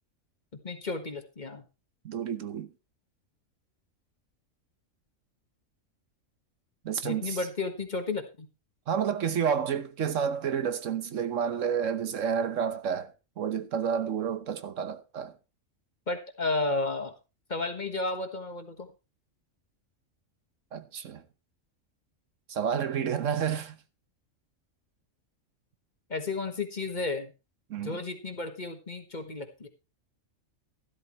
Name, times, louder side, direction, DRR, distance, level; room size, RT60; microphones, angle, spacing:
voice 1, 0.6-1.6 7.0-8.5 16.1-17.1 17.5-18.9 26.1-27.3 27.8-29.7, left 3 dB, 35° left, 1.5 m, -32 dB
voice 2, 2.0-2.7 6.8-7.4 8.9-15.3 20.7-21.2 22.5-23.8 27.7-28.0, right 7 dB, 70° right, 1.3 m, -30 dB
13.0 x 12.0 x 3.1 m
omnidirectional pair, 1.4 m